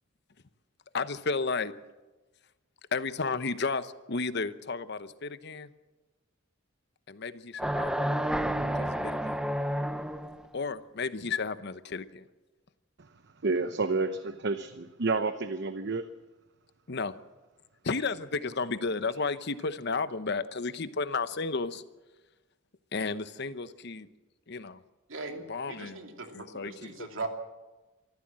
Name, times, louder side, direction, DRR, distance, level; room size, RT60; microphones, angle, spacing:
voice 1, 0.9-1.7 2.9-5.7 7.1-8.0 8.7-9.4 10.5-12.2 16.9-17.1 17.8-21.8 22.9-24.1 24.5-24.8 25.5-26.0 26.3-27.1, left 4 dB, 60° left, 13 dB, 0.9 m, -33 dB
sound 1, 7.6-10.5, equal, 5° right, 0.7 m, -30 dB
voice 2, 13.4-16.1, right 3 dB, 60° right, 10 dB, 0.8 m, -29 dB
voice 3, 25.1-27.3, right 3 dB, 80° right, 4 dB, 2.9 m, -39 dB
24.5 x 14.5 x 7.6 m, 1.2 s
head